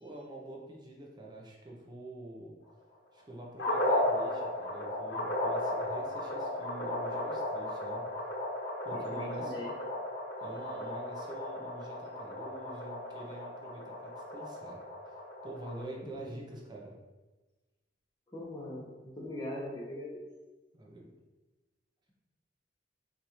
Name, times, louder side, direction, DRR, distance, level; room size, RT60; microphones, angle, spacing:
voice 1, 0.0-2.6 3.1-8.1 8.8-9.5 10.4-14.8 15.1-17.0 20.7-21.1, right 1 dB, 25° right, -2 dB, 0.7 m, -46 dB
sound 1, 3.6-15.8, left 1 dB, 75° left, 0.9 m, -35 dB
voice 2, 8.9-9.7 16.0-16.3 18.3-20.2, left 1 dB, 25° left, -4 dB, 1.1 m, -41 dB
6.1 x 2.6 x 3.1 m, 1.2 s
head